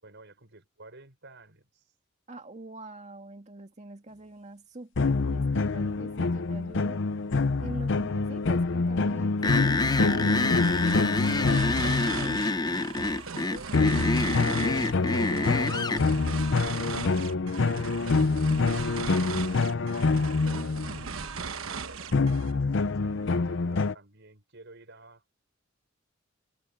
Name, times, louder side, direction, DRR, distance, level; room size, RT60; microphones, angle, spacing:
voice 1, 0.0-1.9 13.1-15.6 16.4-18.6 20.0-25.2, right 2 dB, 60° right, 6.3 m, -52 dB
voice 2, 2.3-7.0 7.6-11.2 11.7-12.5, right 2 dB, 35° right, 2.2 m, -44 dB
sound 1, 5.0-12.6 13.7-21.3 22.1-23.9, left 3 dB, 65° left, 0.6 m, -26 dB
sound 2, 9.4-16.0, left 3 dB, 20° left, 0.6 m, -27 dB
sound 3, 10.3-22.6, right 5 dB, 85° right, 1.1 m, -38 dB
head